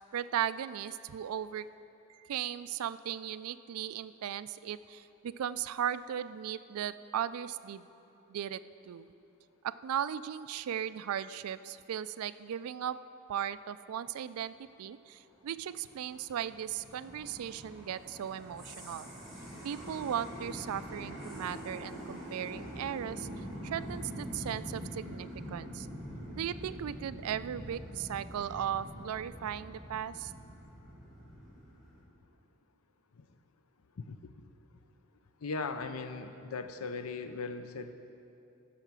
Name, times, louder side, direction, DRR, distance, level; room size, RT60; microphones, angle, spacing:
voice 1, 0.1-1.7 2.1-7.9 8.3-9.1 9.6-13.0 13.3-19.1 19.6-25.9 26.3-30.3, right 9 dB, 90° right, 15 dB, 0.3 m, -37 dB
sound 1, 15.5-32.0, equal, ahead, 2.6 m, -45 dB
voice 2, 35.4-37.9, left 4 dB, 85° left, 9 dB, 0.6 m, -38 dB
14.5 x 5.8 x 6.1 m, 2.8 s
head